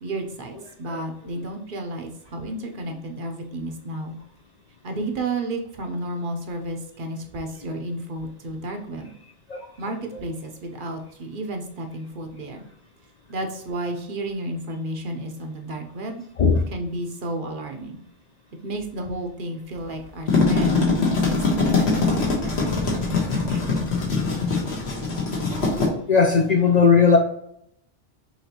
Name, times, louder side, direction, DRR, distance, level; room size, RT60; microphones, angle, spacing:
voice 1, 0.0-4.2 4.8-9.1 9.8-12.6 13.3-16.2 16.7-18.0 18.6-22.7 23.0-23.7, right 1 dB, 55° right, 4 dB, 0.8 m, -32 dB
sound 1, 20.1-25.9, left 3 dB, 70° left, 1.4 m, -22 dB
voice 2, 26.1-27.2, left 5 dB, 55° left, 2 dB, 0.5 m, -17 dB
5.9 x 3.1 x 2.8 m, 0.73 s
omnidirectional pair, 1.1 m